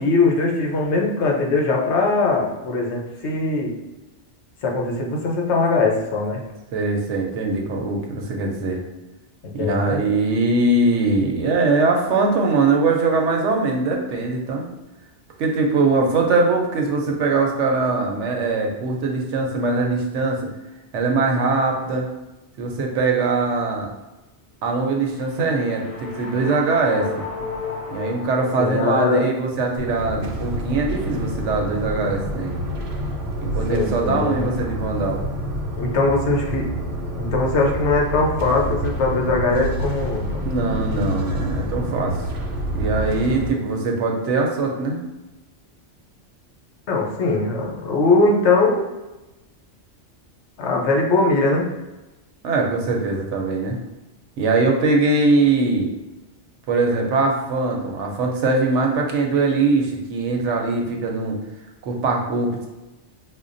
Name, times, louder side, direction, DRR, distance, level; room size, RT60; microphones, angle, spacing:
voice 1, 0.0-3.7 4.6-6.4 9.4-10.0 28.6-29.2 33.7-34.5 35.8-36.6 37.1-40.4 46.9-48.9 50.6-51.7, left 3 dB, 70° left, 0 dB, 0.9 m, -21 dB
voice 2, 6.7-8.8 9.5-14.7 15.4-20.5 20.9-22.1 22.6-23.9 24.6-27.2 27.9-32.6 33.4-35.2 40.4-42.2 42.7-45.0 52.4-53.8 54.4-55.9 56.7-61.4 61.8-62.7, right 3 dB, 80° right, 1 dB, 1.0 m, -21 dB
sound 1, 24.9-29.2, left 4 dB, 45° left, 0.5 m, -34 dB
sound 2, 29.8-43.5, equal, 60° right, 0.8 m, -27 dB
5.1 x 2.2 x 2.5 m, 1.0 s
omnidirectional pair, 1.2 m